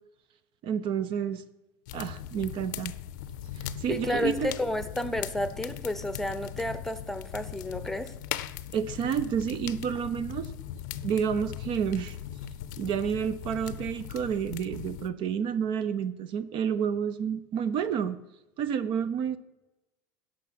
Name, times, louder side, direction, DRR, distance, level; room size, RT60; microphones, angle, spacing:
voice 1, 0.6-1.4 1.9-2.9 3.6-4.5 8.7-10.5 11.0-12.2 12.8-18.2 18.6-19.4, right 7 dB, 55° right, 14 dB, 0.7 m, -29 dB
sound 1, 1.9-15.1, left 11 dB, 75° left, 0.5 m, -39 dB
voice 2, 3.9-8.1, left 1 dB, 5° left, 12 dB, 0.9 m, -31 dB
10.5 x 6.4 x 6.0 m, 0.97 s
hypercardioid pair, 85°, 10 cm